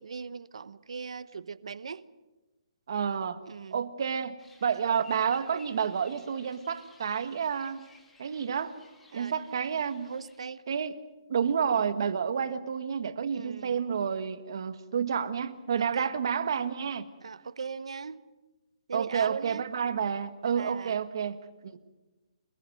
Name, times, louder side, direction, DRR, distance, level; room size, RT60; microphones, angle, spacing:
voice 1, 0.0-2.0 3.5-3.8 9.1-9.4 10.0-10.6 13.3-13.8 15.8-16.1 17.2-18.2 18.9-19.7 20.4-21.0, right 5 dB, 70° right, 1.0 m, -39 dB
voice 2, 2.9-3.4 3.7-7.8 8.2-8.7 9.1-10.1 10.7-11.0 11.3-17.1 18.9-21.8, right 7 dB, 45° right, 1.5 m, -30 dB
sound 1, 4.4-10.4, left 3 dB, 5° left, 1.8 m, -58 dB
27.0 x 20.5 x 7.8 m
hypercardioid pair, 180°, 3 cm